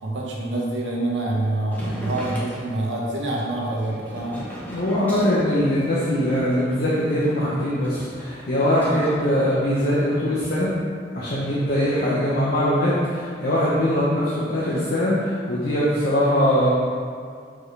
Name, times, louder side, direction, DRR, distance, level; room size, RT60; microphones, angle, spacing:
voice 1, 0.0-4.4 8.9-9.1, right 2 dB, 75° right, -2 dB, 1.1 m, -26 dB
sound 1, 1.7-9.2, equal, 10° left, 1.2 m, -37 dB
voice 2, 4.7-10.7 11.1-16.7, equal, 55° left, -8 dB, 0.9 m, -22 dB
6.2 x 4.9 x 3.4 m, 2.1 s
head